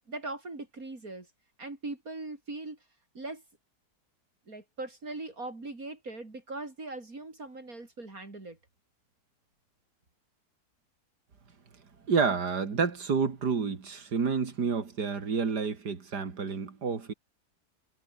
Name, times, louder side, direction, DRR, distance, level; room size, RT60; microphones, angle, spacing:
voice 1, 0.1-1.3 1.6-2.8 3.1-3.4 4.5-8.6, right 2 dB, 60° right, 4.8 m, -40 dB
voice 2, 12.1-17.1, right 5 dB, 80° right, 3.0 m, -29 dB
omnidirectional pair, 1.7 m